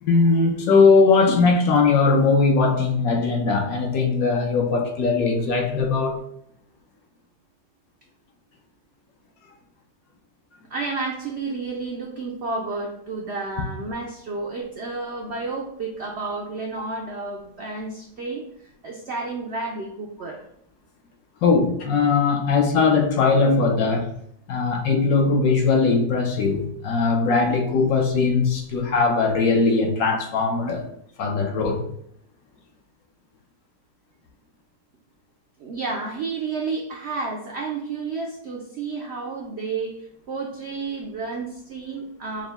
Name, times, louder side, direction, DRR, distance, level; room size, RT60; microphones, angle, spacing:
voice 1, 0.0-6.2 21.4-24.1 24.5-30.9 31.2-31.9, left 4 dB, 70° left, 1.0 m, -20 dB
voice 2, 10.7-20.4 35.6-42.5, right 3 dB, 75° right, 0.6 m, -31 dB
4.9 x 2.1 x 3.4 m
omnidirectional pair, 1.7 m